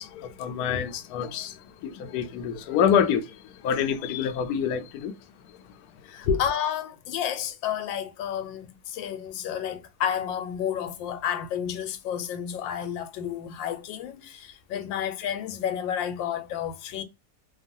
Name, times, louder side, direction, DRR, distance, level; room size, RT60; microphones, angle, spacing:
voice 1, 0.0-5.9 6.2-6.4, left 7 dB, 70° left, 0.9 m, -27 dB
voice 2, 6.0-17.0, left 9 dB, 90° left, 1.3 m, -31 dB
3.0 x 2.3 x 2.5 m
omnidirectional pair, 2.0 m